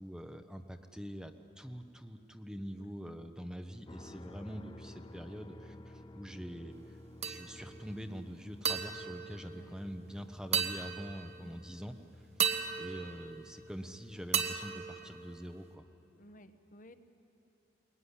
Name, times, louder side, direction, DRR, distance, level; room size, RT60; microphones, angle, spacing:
voice 1, 0.0-11.9 12.8-15.8, equal, 5° right, 7 dB, 0.9 m, -45 dB
voice 2, 2.8-3.2 9.5-9.8 16.1-16.9, equal, 45° left, 9 dB, 1.2 m, -55 dB
sound 1, 3.9-14.2, left 1 dB, 25° left, 0.7 m, -53 dB
sound 2, 7.2-7.8 8.6-10.1 10.5-11.5 12.4-13.9 14.3-15.7, right 7 dB, 40° right, 1.3 m, -36 dB
22.5 x 22.5 x 9.9 m, 2.9 s
head